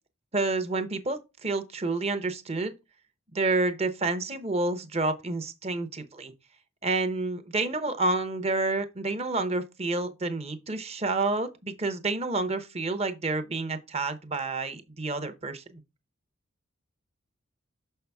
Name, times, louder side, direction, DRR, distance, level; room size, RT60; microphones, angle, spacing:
voice 1, 0.3-2.7 3.3-6.3 6.8-15.8, right 3 dB, 30° right, 0.8 m, -29 dB
6.2 x 5.6 x 3.5 m
head